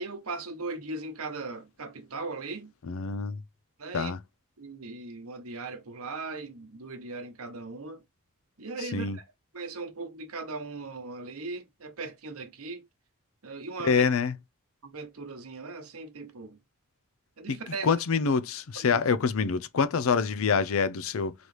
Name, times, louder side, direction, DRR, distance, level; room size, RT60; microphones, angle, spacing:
voice 1, 0.0-2.7 3.8-4.1 4.6-8.0 8.6-9.2 9.5-12.9 13.4-14.0 14.8-16.6 17.4-17.9 18.9-19.0, right 3 dB, 80° right, 1.0 m, -38 dB
voice 2, 2.8-3.4 3.9-4.2 8.9-9.2 13.8-14.4 17.5-21.3, left 5 dB, 70° left, 0.5 m, -26 dB
4.0 x 3.1 x 3.2 m
head